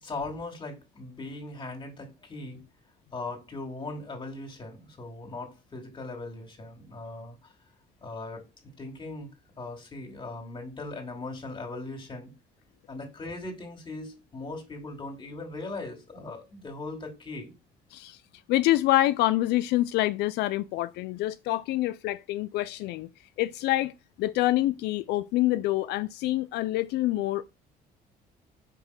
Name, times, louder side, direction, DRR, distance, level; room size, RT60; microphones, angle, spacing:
voice 1, 0.0-2.6 3.1-7.5 8.0-8.4 8.8-9.3 9.6-12.3 12.9-17.5, left 2 dB, 30° left, 2.4 m, -39 dB
voice 2, 18.5-23.1 23.4-27.5, left 16 dB, 85° left, 0.4 m, -26 dB
5.3 x 3.5 x 5.5 m
cardioid pair, 110°, 17 cm